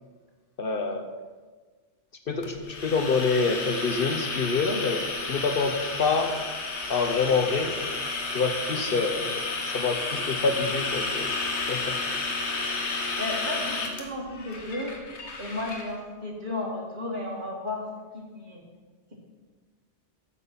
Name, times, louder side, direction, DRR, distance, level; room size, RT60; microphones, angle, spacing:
voice 1, 0.6-1.0 2.3-6.3 6.9-7.7 8.3-11.3 11.7-12.0, left 4 dB, 55° left, 6 dB, 0.9 m, -26 dB
sound 1, 2.4-15.9, left 3 dB, 75° left, 1.5 m, -31 dB
voice 2, 13.1-14.9 15.4-17.9 18.1-18.6, left 2 dB, 45° right, -1 dB, 1.9 m, -33 dB
8.2 x 7.4 x 5.7 m, 1.4 s
omnidirectional pair, 1.2 m